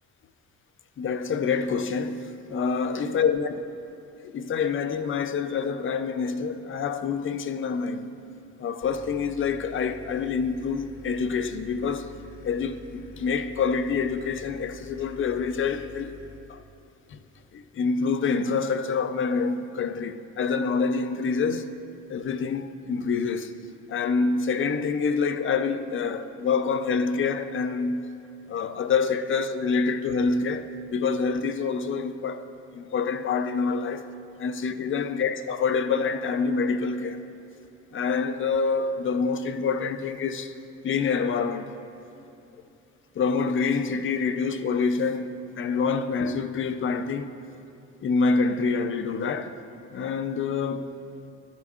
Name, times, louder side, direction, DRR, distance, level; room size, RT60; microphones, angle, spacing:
voice 1, 1.0-3.6 4.2-8.1 8.6-12.1 12.4-16.1 16.5-16.6 17.1-17.2 17.5-21.7 22.1-23.5 23.9-28.1 28.5-34.0 34.4-37.2 37.9-40.5 40.8-41.7 43.2-47.3 48.0-49.6 49.9-50.9, left 5 dB, 45° left, 0.5 m, -26 dB
sound 1, 8.8-16.4, left 3 dB, 80° left, 0.9 m, -47 dB
10.5 x 9.6 x 2.4 m
cardioid pair, 90°, 30 cm